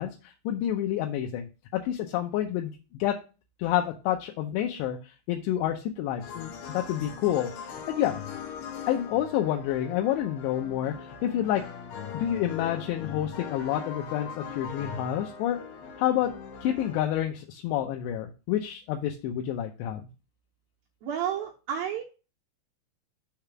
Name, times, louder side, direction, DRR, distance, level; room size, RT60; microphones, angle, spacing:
voice 1, 0.0-2.7 3.0-3.2 3.6-8.2 8.9-11.6 12.1-15.6 16.0-16.3 16.6-20.0, left 11 dB, 85° left, 3 dB, 2.8 m, -29 dB
sound 1, 6.2-17.0, left 7 dB, 65° left, 2.6 m, -40 dB
voice 2, 21.0-22.0, right 9 dB, 80° right, 0 dB, 2.2 m, -31 dB
6.5 x 3.5 x 5.8 m, 0.32 s
omnidirectional pair, 5.0 m